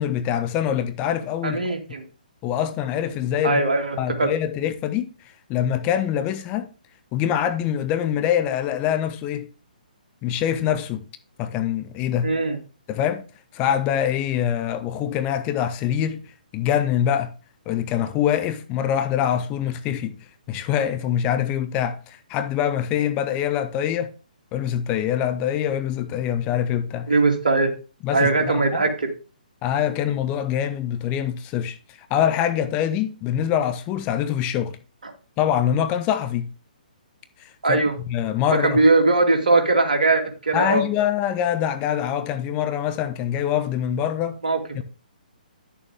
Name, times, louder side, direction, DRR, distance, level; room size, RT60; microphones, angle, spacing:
voice 1, 0.0-1.7 2.4-3.6 4.0-5.1 5.5-6.7 7.1-9.5 10.2-11.0 11.4-12.3 12.9-13.2 13.5-16.2 16.5-17.3 17.7-20.2 20.5-24.1 24.5-27.1 28.0-28.8 29.6-34.8 35.4-36.5 37.4-37.8 38.1-38.8 40.5-44.4 44.7-44.8, left 10 dB, 25° left, 0.7 m, -24 dB
voice 2, 1.4-2.0 3.4-4.3 12.2-12.6 27.1-27.7 28.1-29.1 35.0-35.1 37.6-37.9 38.5-40.8 44.4-44.8, right 3 dB, 65° right, 2.4 m, -20 dB
10.5 x 6.8 x 3.5 m
figure-of-eight pair, 130°, 5 cm